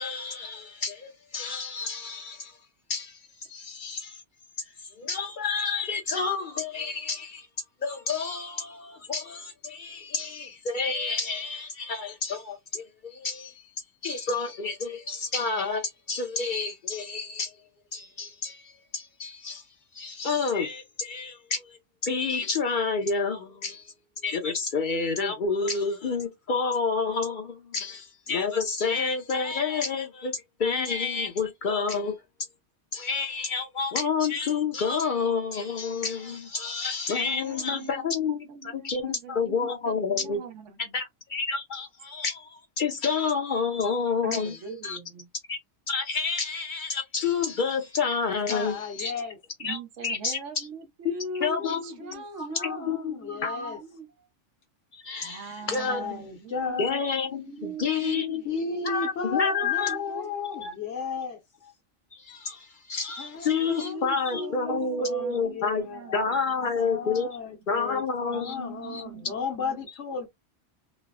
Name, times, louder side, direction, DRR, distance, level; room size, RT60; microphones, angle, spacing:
voice 1, 0.0-2.6 2.9-3.2 3.5-4.2 5.0-7.5 7.8-13.6 14.0-17.5 17.9-19.7 19.9-23.9 24.2-32.2 32.9-40.4 40.9-44.6 44.8-45.0 45.5-45.6 45.9-49.1 49.6-50.7 51.4-51.8 52.4-53.8 54.9-56.1 56.8-58.4 58.8-60.0 60.3-60.7 62.1-65.9 66.1-67.3 67.7-69.0, left 5 dB, 55° left, 0.6 m, -29 dB
voice 2, 37.2-41.0 44.2-45.3 49.6-54.1 55.2-56.8 57.4-59.0 59.3-60.7 63.7-66.7 67.0-67.2 67.5-67.6 68.3-69.8, right 4 dB, 85° right, 1.1 m, -41 dB
voice 3, 48.5-49.4 51.4-52.2 52.5-53.8 55.6-57.0 58.4-61.4 63.2-66.3 66.8-70.3, left 5 dB, 75° left, 1.2 m, -34 dB
3.2 x 2.0 x 2.2 m
omnidirectional pair, 1.2 m